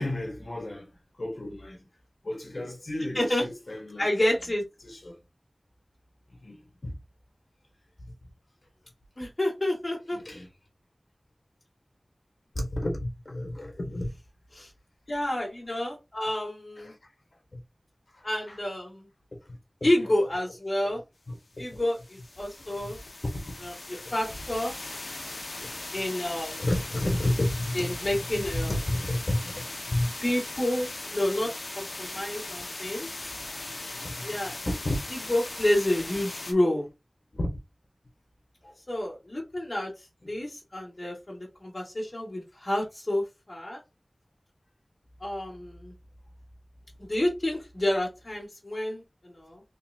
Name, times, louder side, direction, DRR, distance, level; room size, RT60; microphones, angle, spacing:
voice 1, 0.0-1.9 2.2-4.1 4.8-5.2 6.3-7.0 8.0-8.1 10.1-10.5 12.5-14.1 16.8-17.0 17.5-17.6 18.1-18.6 19.5-19.6 20.8-20.9 21.3-21.8 22.6-22.9 23.3-23.7 26.6-30.1 33.9-34.3 34.8-35.0 37.3-37.6 38.6-38.7 40.2-40.4, left 1 dB, 70° left, 1.4 m, -32 dB
voice 2, 3.1-3.5 4.0-4.6 9.2-10.2 14.5-14.7 15.1-16.9 18.2-19.1 19.8-21.0 21.6-23.0 23.6-24.7 25.9-26.6 27.7-28.7 30.2-33.1 34.2-34.5 35.3-36.9 38.9-43.8 45.2-45.9 47.0-49.6, left 1 dB, 45° left, 1.9 m, -29 dB
sound 1, 21.6-36.5, left 2 dB, 85° left, 0.8 m, -39 dB
4.0 x 3.3 x 2.8 m
wide cardioid pair, 45°, 0 cm